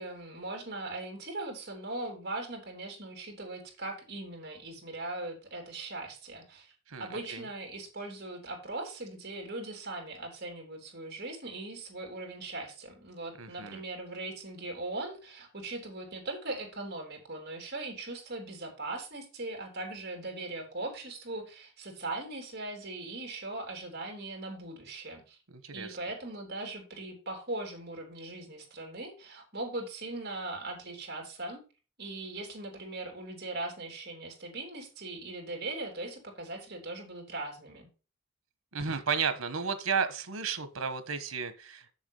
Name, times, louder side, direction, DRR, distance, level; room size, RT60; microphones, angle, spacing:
voice 1, 0.0-6.7 7.0-25.4 25.7-31.6 32.0-37.9, right 2 dB, 50° right, 2 dB, 3.3 m, -40 dB
voice 2, 6.9-7.4 13.4-13.8 25.6-26.0 38.7-41.9, right 5 dB, 85° right, 11 dB, 1.3 m, -33 dB
7.2 x 6.9 x 5.4 m, 0.34 s
head